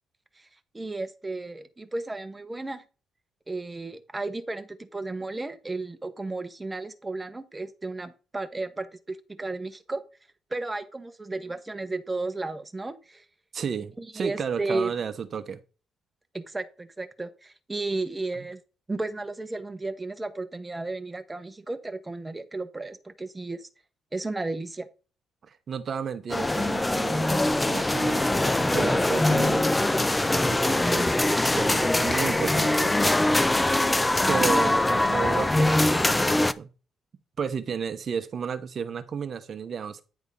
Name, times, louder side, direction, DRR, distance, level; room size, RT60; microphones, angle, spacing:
voice 1, 0.7-2.8 3.5-10.0 10.5-13.2 14.0-14.9 16.3-18.6 18.9-23.7 24.1-24.9 34.2-34.5, right 2 dB, 15° right, 0.9 m, -33 dB
voice 2, 13.5-15.6 18.4-18.5 25.4-29.9 30.5-31.2 31.5-33.0 34.3-36.7 37.4-40.0, right 7 dB, 45° right, 0.9 m, -33 dB
sound 1, 26.3-36.5, left 1 dB, 10° left, 0.4 m, -23 dB
9.8 x 3.6 x 5.3 m
cardioid pair, 105°, 0 cm